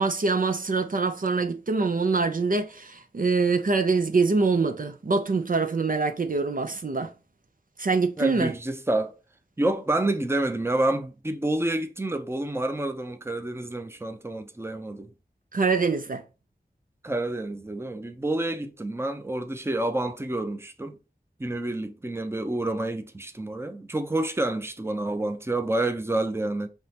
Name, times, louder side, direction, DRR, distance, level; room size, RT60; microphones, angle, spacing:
voice 1, 0.0-7.1 7.8-8.5 15.5-16.2, right 4 dB, 55° right, 0.6 m, -24 dB
voice 2, 8.2-9.1 9.6-15.1 17.0-21.0 21.4-26.7, right 2 dB, 15° right, 0.7 m, -28 dB
5.3 x 3.1 x 2.9 m
wide cardioid pair, 70°, 17 cm